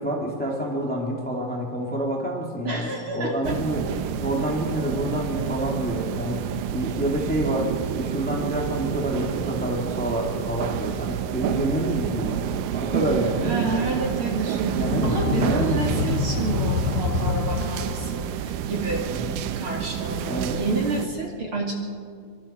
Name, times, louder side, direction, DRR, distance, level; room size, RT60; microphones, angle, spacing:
voice 1, 0.0-3.8 4.2-7.7 8.0-12.4 12.7-13.7 14.7-15.8 19.1-19.4 20.2-20.6, right 1 dB, 5° left, -1 dB, 1.9 m, -28 dB
voice 2, 2.6-3.6 13.4-19.0 19.6-21.8, right 3 dB, 40° right, 0 dB, 2.7 m, -29 dB
sound 1, 3.4-21.1, right 10 dB, 80° right, 2.4 m, -29 dB
sound 2, 14.6-18.4, left 6 dB, 70° left, 2.0 m, -27 dB
25.0 x 24.0 x 4.4 m, 2.1 s
omnidirectional pair, 3.9 m